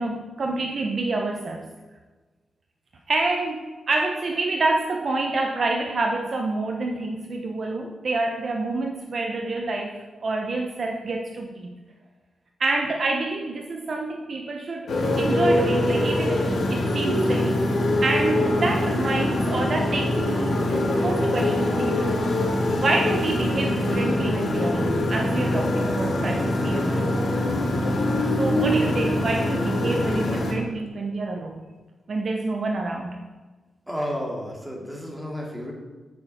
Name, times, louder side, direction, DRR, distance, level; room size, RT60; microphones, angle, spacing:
voice 1, 0.0-1.6 3.1-11.7 12.6-14.9 15.2-22.1 22.8-27.2 28.4-31.6 32.1-33.2, right 2 dB, 40° right, 2 dB, 1.0 m, -27 dB
Motorcycle, 14.9-30.5, left 1 dB, 60° left, 3.5 m, -23 dB
voice 2, 33.9-35.7, equal, 5° right, -2 dB, 2.5 m, -31 dB
9.3 x 6.8 x 8.9 m, 1.3 s
wide cardioid pair, 170°, 0 cm